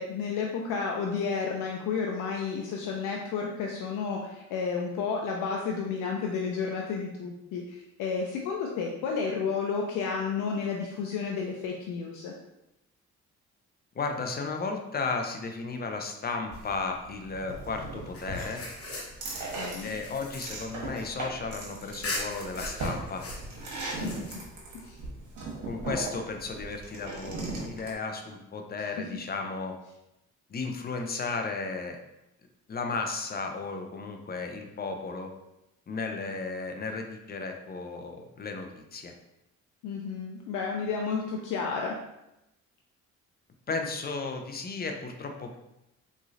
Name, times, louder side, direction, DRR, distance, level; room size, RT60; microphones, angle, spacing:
voice 1, 0.0-12.3 19.6-19.9 23.9-24.2 24.8-25.0 28.8-29.1 39.8-41.9, left 5 dB, 85° left, 0 dB, 0.5 m, -31 dB
voice 2, 14.0-18.6 19.8-23.2 25.7-29.7 30.5-32.0 32.7-35.3 35.9-39.1 43.7-45.6, left 4 dB, 30° left, 4 dB, 0.5 m, -34 dB
sound 1, 16.5-27.9, right 2 dB, 80° right, 1.2 m, -38 dB
sound 2, 18.1-21.5 22.0-24.7, left 2 dB, 50° left, 1.0 m, -40 dB
3.7 x 3.1 x 2.5 m, 0.88 s
cardioid pair, 90°, 30 cm